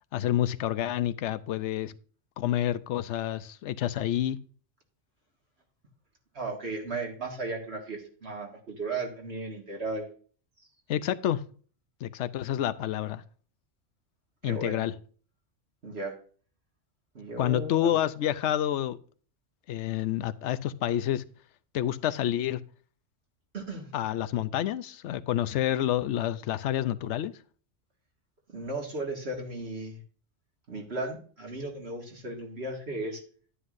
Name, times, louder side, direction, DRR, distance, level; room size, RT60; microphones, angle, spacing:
voice 1, 0.1-1.9 2.4-4.4 10.9-11.4 12.0-13.2 14.4-14.9 17.4-19.0 19.7-21.2 21.7-22.6 23.9-27.3, left 12 dB, 75° left, 0.9 m, -28 dB
voice 2, 6.3-10.1 14.4-14.9 15.8-16.1 17.1-18.0 23.5-23.9 28.5-30.0 30.7-33.2, right 2 dB, 60° right, 2.2 m, -35 dB
11.5 x 9.9 x 2.6 m
omnidirectional pair, 1.2 m